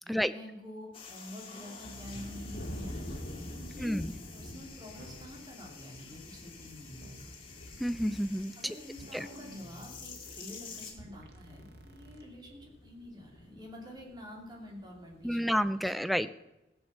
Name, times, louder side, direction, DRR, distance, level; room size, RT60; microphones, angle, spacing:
voice 1, 0.0-3.1 3.5-4.0 4.3-7.2 8.3-16.0, left 1 dB, 25° right, 0 dB, 2.5 m, -48 dB
sound 1, 0.9-10.9, left 5 dB, 30° left, 2.0 m, -49 dB
sound 2, 1.6-15.6, left 1 dB, 70° left, 2.2 m, -48 dB
sound 3, 1.8-3.3 5.0-5.5 7.0-7.3 9.0-10.5 11.0-12.2, right 1 dB, 70° right, 1.4 m, -49 dB
voice 2, 3.8-4.1 7.8-8.7 9.1-9.3 15.2-16.3, equal, ahead, 13 dB, 0.3 m, -30 dB
16.0 x 7.2 x 6.7 m, 0.98 s
head